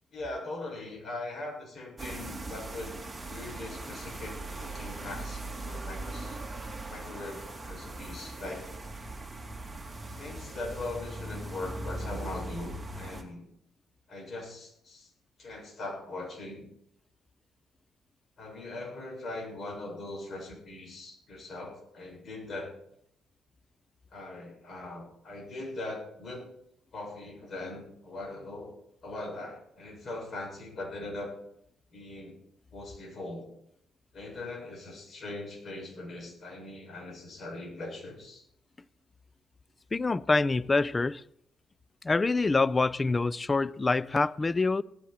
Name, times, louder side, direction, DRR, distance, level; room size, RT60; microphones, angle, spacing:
voice 1, 0.1-3.0 3.3-4.4 4.6-6.4 6.9-8.7 10.2-13.4 14.1-15.1 15.4-16.7 18.4-22.7 24.1-26.5 26.9-28.7 29.0-31.4 31.9-32.4 32.7-33.5 34.1-38.4, left 2 dB, 50° left, 6.3 m, -40 dB
sound 1, 2.0-13.2, right 2 dB, 15° right, 2.8 m, -40 dB
voice 2, 39.9-41.2 42.0-44.8, left 3 dB, 25° left, 0.5 m, -26 dB
18.5 x 13.5 x 4.3 m
cardioid pair, 90°, 0 cm